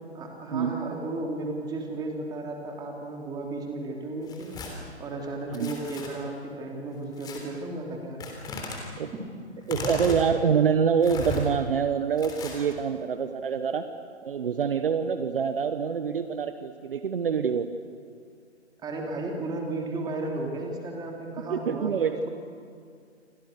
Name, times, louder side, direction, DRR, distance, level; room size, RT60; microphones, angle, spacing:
voice 1, 0.1-4.6 5.0-8.2 9.1-9.3 18.8-22.3, right 2 dB, 10° right, 1 dB, 3.4 m, -34 dB
Tearing, 4.2-4.7 5.5-6.1 7.2-7.4 8.2-8.8 9.6-10.2 11.0-11.4 12.2-12.8, left 4 dB, 10° left, 3.3 m, -36 dB
voice 2, 9.7-13.8 14.2-17.7 21.5-22.2, right 7 dB, 50° right, 10 dB, 1.3 m, -26 dB
29.0 x 25.0 x 6.7 m, 2.3 s
figure-of-eight pair, 135°, 35 cm